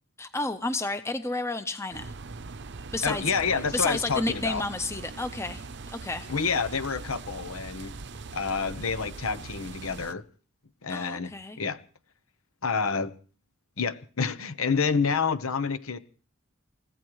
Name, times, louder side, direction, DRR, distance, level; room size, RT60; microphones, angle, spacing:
voice 1, 0.2-2.1 2.9-3.3 3.7-6.3 10.9-11.6, left 2 dB, 15° left, 0.8 m, -31 dB
sound 1, 1.9-10.1, right 3 dB, 55° right, 0.7 m, -41 dB
voice 2, 3.0-4.6 6.3-7.9 8.3-10.2 10.8-11.8 12.6-13.1 13.8-16.0, left 5 dB, 80° left, 1.1 m, -28 dB
29.0 x 15.5 x 3.2 m
head